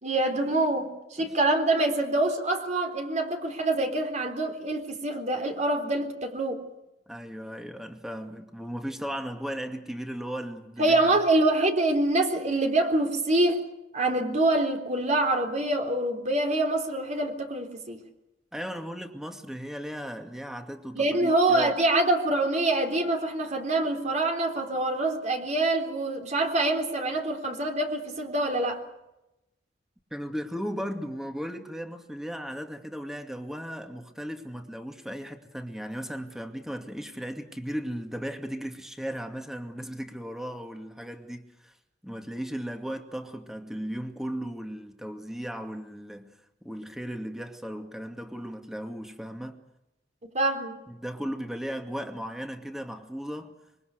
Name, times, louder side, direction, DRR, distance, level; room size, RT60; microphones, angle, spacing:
voice 1, 0.0-6.6 10.8-13.6 13.9-18.0 21.0-28.8 50.2-50.7, right 2 dB, 45° right, 3.8 m, -25 dB
voice 2, 7.1-11.1 18.5-21.7 30.1-41.7 42.0-46.3 46.6-49.6 50.9-53.5, equal, 5° right, 2.4 m, -36 dB
25.5 x 23.5 x 6.7 m
head